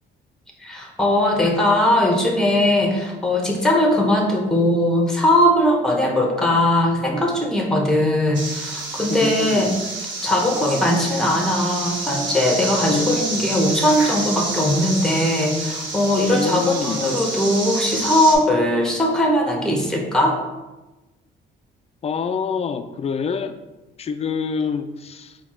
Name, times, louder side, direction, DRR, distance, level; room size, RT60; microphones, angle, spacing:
voice 1, 0.6-9.8 10.2-20.4, left 1 dB, 5° left, 1 dB, 0.9 m, -19 dB
sound 1, 8.3-18.3, right 3 dB, 70° right, 1.1 m, -28 dB
voice 2, 9.2-9.7 12.9-13.5 16.3-17.1 22.0-23.6 24.0-25.4, left 5 dB, 30° left, 9 dB, 0.3 m, -26 dB
4.4 x 2.3 x 4.2 m, 1.1 s
cardioid pair, 90°, 20 cm